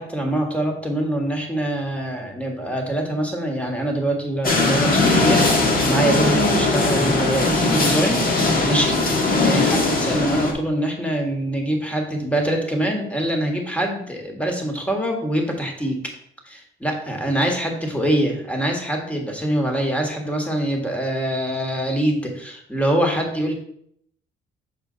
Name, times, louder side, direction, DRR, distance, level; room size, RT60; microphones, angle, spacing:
voice 1, 0.0-16.0 16.4-23.5, right 1 dB, 5° left, 2 dB, 1.6 m, -24 dB
sound 1, 4.4-10.5, left 2 dB, 45° left, 1.4 m, -19 dB
6.7 x 4.4 x 3.9 m, 0.70 s
cardioid pair, 90°, 20 cm